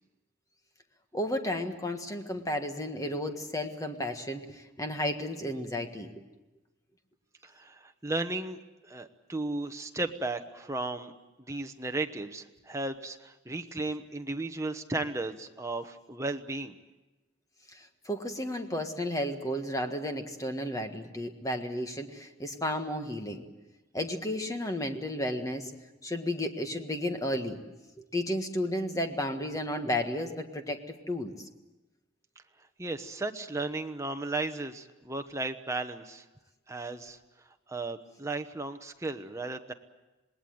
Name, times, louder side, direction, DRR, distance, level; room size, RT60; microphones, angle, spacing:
voice 1, 1.1-6.1 17.7-23.4 23.9-25.7 26.0-27.6 28.0-31.3, left 1 dB, 15° left, 6 dB, 1.6 m, -33 dB
voice 2, 7.4-8.6 8.8-11.1 11.4-16.8 32.8-36.2 36.7-37.2 37.7-39.7, right 2 dB, 15° right, 6 dB, 1.1 m, -35 dB
26.5 x 20.0 x 7.9 m, 1.1 s
head